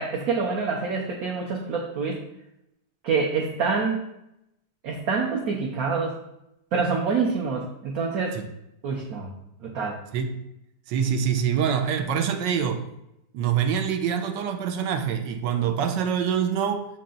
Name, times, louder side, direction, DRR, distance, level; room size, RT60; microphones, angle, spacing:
voice 1, 0.0-2.2 3.0-4.0 4.8-6.2 6.7-8.4 8.8-9.3 9.6-10.0, right 4 dB, 65° right, -1 dB, 1.2 m, -26 dB
voice 2, 10.9-12.8 13.3-16.9, right 8 dB, 85° right, 6 dB, 1.3 m, -25 dB
6.3 x 4.2 x 3.9 m, 0.83 s
omnidirectional pair, 1.9 m